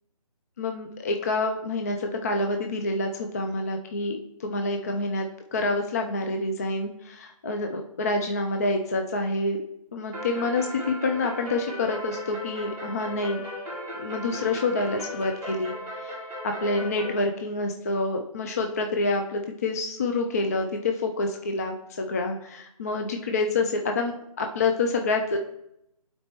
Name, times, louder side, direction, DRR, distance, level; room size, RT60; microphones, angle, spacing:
voice 1, 0.6-9.6 9.9-13.4 13.9-15.7 16.0-16.2 16.4-25.4, left 2 dB, 25° left, 4 dB, 0.4 m, -27 dB
sound 1, 10.1-17.2, equal, 10° right, 2.1 m, -36 dB
11.5 x 4.2 x 3.0 m, 0.80 s
hypercardioid pair, 160°, 19 cm